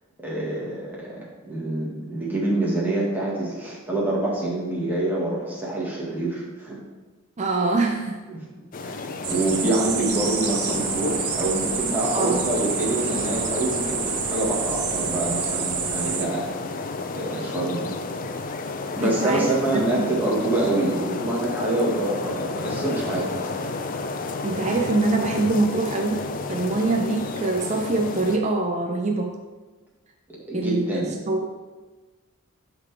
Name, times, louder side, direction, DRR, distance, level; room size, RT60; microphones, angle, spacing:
voice 1, 0.2-6.8 8.3-8.5 8.8-16.5 17.1-17.9 19.0-23.5 30.3-31.2, right 2 dB, 10° right, -5 dB, 1.6 m, -26 dB
voice 2, 7.4-8.2 12.1-12.4 19.0-19.5 19.9-20.1 24.4-29.4 30.5-31.5, right 2 dB, 30° right, 2 dB, 0.5 m, -24 dB
sound 1, 8.7-28.4, left 3 dB, 40° left, 0.4 m, -32 dB
sound 2, 9.2-16.2, right 7 dB, 80° right, 0.7 m, -28 dB
10.5 x 4.0 x 3.4 m, 1.3 s
head